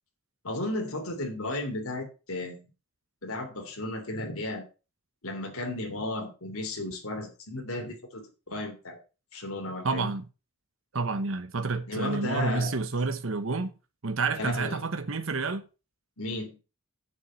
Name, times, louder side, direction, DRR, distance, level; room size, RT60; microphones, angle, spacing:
voice 1, 0.4-2.7 3.2-4.6 5.2-9.0 9.3-10.1 11.9-12.7 14.3-14.8 16.2-16.6, left 2 dB, 70° left, 3.1 m, -34 dB
voice 2, 9.8-10.3 10.9-13.7 14.0-15.7, right 4 dB, 60° right, 1.0 m, -29 dB
7.2 x 6.2 x 7.4 m
head